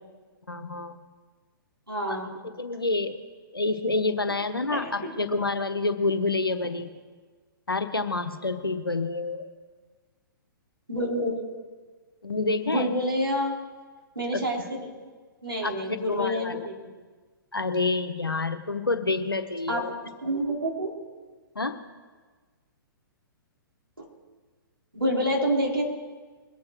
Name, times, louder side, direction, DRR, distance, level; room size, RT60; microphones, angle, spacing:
voice 1, 0.5-1.0 2.1-2.2 2.6-3.2 3.5-6.9 7.7-9.5 12.2-12.9 14.3-14.4 15.6-16.7 17.5-19.9 21.5-21.8, left 3 dB, 85° left, 8 dB, 1.2 m, -28 dB
voice 2, 1.9-2.3 4.7-5.1 10.9-11.4 12.6-13.5 14.2-14.8 15.4-16.7 19.7-19.9 20.2-20.9 24.0-24.1 24.9-25.9, equal, 85° right, -2 dB, 3.8 m, -28 dB
22.5 x 8.6 x 4.6 m, 1.4 s
figure-of-eight pair, 120°, 12 cm